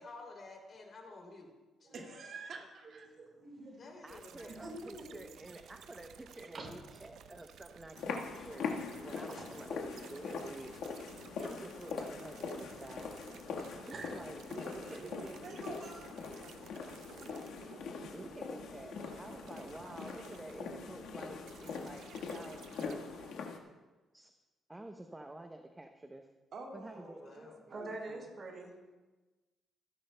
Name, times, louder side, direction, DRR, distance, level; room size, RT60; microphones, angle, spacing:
voice 1, 0.0-2.3 3.8-4.6 26.9-27.6, left 2 dB, 45° left, 2 dB, 2.9 m, -52 dB
voice 2, 1.9-3.1 13.6-13.9 14.5-17.7 26.5-28.2, right 4 dB, 60° right, 0 dB, 2.2 m, -50 dB
voice 3, 3.2-3.8 4.6-5.2 6.5-6.7 9.4-9.5 13.9-14.2 17.1-17.3 27.7-28.7, right 2 dB, 45° right, 0 dB, 4.4 m, -45 dB
voice 4, 4.0-8.7 9.0-11.0 11.4-13.1 13.8-15.3 18.1-23.1 24.1-24.3 24.7-26.3 26.7-27.2, right 1 dB, 15° right, 5 dB, 0.7 m, -49 dB
sound 1, 4.1-23.3, right 8 dB, 75° right, 0.6 m, -56 dB
sound 2, 8.0-23.6, left 5 dB, 80° left, 1.4 m, -42 dB
24.5 x 11.0 x 2.2 m, 1.2 s
cardioid pair, 90°, 0 cm